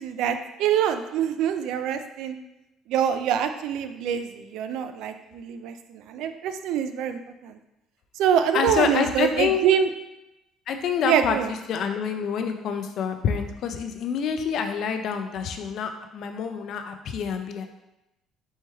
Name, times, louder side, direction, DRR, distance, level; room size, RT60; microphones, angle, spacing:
voice 1, 0.0-2.4 2.9-5.7 6.1-7.6 8.2-9.9 11.0-11.5, right 8 dB, 75° right, 8 dB, 0.3 m, -25 dB
voice 2, 8.5-9.6 10.7-11.4 11.7-17.7, left 7 dB, 55° left, 6 dB, 0.4 m, -27 dB
4.4 x 3.1 x 3.4 m, 0.92 s
cardioid pair, 150°, 0 cm